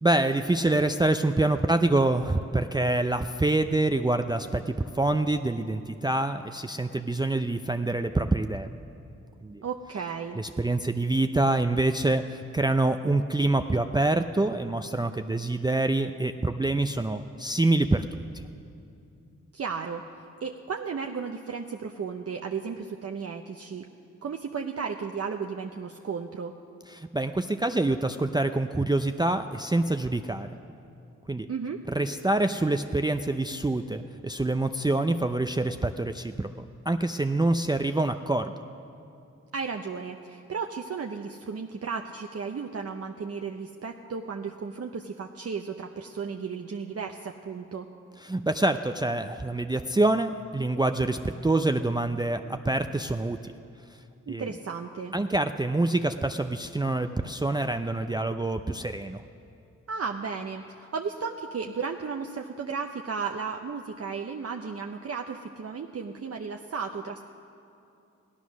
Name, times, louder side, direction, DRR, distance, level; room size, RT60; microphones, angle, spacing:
voice 1, 0.0-8.7 9.4-9.6 10.3-18.4 26.9-30.5 31.3-31.5 31.9-36.5 36.9-38.5 48.2-53.5 54.3-54.5 55.1-59.2, right 2 dB, 15° right, 7 dB, 0.4 m, -26 dB
voice 2, 9.6-10.4 19.5-20.0 20.4-23.9 24.2-26.5 31.5-31.8 39.5-47.9 54.3-55.1 59.9-67.2, right 5 dB, 55° right, 3 dB, 0.7 m, -34 dB
16.0 x 11.5 x 6.2 m, 2.6 s
cardioid pair, 50°, 30 cm